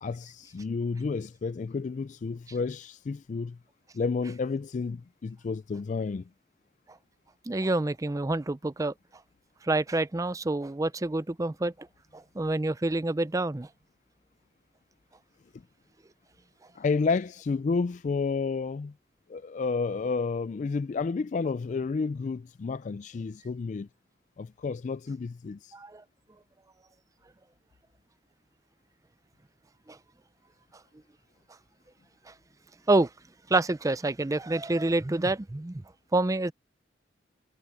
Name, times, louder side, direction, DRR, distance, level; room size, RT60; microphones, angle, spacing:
voice 1, 0.0-3.6 3.9-6.3 15.5-15.6 16.7-18.9 19.3-23.9 24.4-25.7, left 4 dB, 40° left, 0.3 m, -31 dB
voice 2, 7.5-8.9 9.6-11.7 12.1-13.7 25.7-26.0 29.9-30.0 32.3-32.4 32.9-33.1 33.5-35.8 36.1-36.5, right 2 dB, 20° right, 0.5 m, -27 dB
head